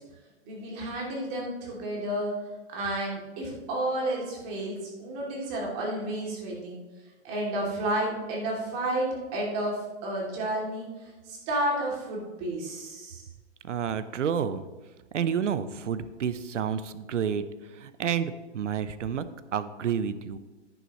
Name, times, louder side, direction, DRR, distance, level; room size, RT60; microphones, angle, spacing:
voice 1, 0.4-2.4 2.7-6.8 7.2-13.2, right 1 dB, 30° right, -2 dB, 2.8 m, -31 dB
voice 2, 13.6-14.6 15.1-17.4 17.7-19.2 19.5-20.4, right 8 dB, 90° right, 13 dB, 0.8 m, -29 dB
10.5 x 10.0 x 3.1 m, 1.2 s
hypercardioid pair, 150°, 35 cm